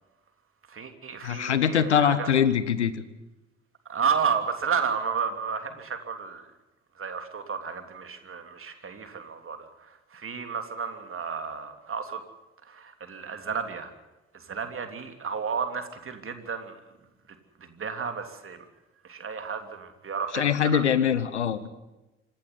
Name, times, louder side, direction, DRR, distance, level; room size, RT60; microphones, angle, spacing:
voice 1, 0.7-2.3 3.9-6.5 7.0-12.2 12.6-13.9 14.3-16.8 17.6-18.6 19.0-20.8, right 6 dB, 40° right, 6 dB, 3.2 m, -32 dB
voice 2, 1.2-3.0 20.3-21.7, left 8 dB, 85° left, 15 dB, 1.0 m, -23 dB
26.5 x 12.0 x 9.7 m, 1.0 s
figure-of-eight pair, 45°, 33 cm